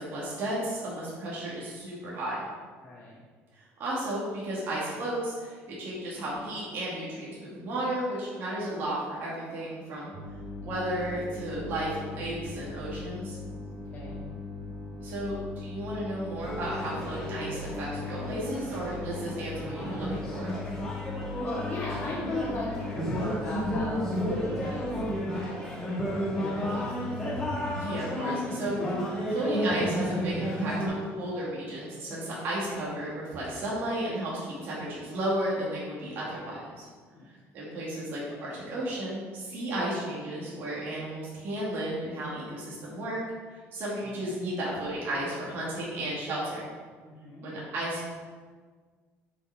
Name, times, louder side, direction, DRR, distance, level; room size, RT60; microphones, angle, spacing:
voice 1, 0.0-2.4 3.5-10.1 10.6-13.4 15.0-20.6 27.7-36.9 37.3-43.2 43.5-46.7 47.4-48.1, right 1 dB, 45° right, -6 dB, 2.2 m, -33 dB
voice 2, 2.8-3.2 13.5-14.2 21.4-25.5 25.9-27.2 32.0-32.4 37.1-37.3 44.0-44.3 47.0-47.5, left 2 dB, 25° left, -8 dB, 1.7 m, -38 dB
sound 1, 10.1-25.1, left 3 dB, 25° right, 2.0 m, -40 dB
sound 2, 16.4-30.9, equal, 10° left, 1.6 m, -32 dB
8.0 x 5.3 x 4.8 m, 1.5 s
cardioid pair, 180°, 5 cm